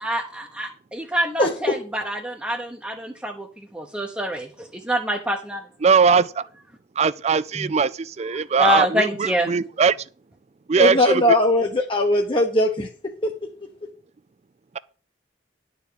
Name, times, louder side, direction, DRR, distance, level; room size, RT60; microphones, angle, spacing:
voice 1, 0.0-5.6 7.5-7.7 8.6-9.5, equal, 5° right, 0.9 m, -26 dB
voice 2, 5.8-6.5 7.0-10.0 10.7-11.2, right 5 dB, 35° right, 0.4 m, -20 dB
voice 3, 10.8-12.9 13.2-13.3, left 1 dB, 30° left, 1.0 m, -19 dB
11.0 x 4.7 x 6.8 m
head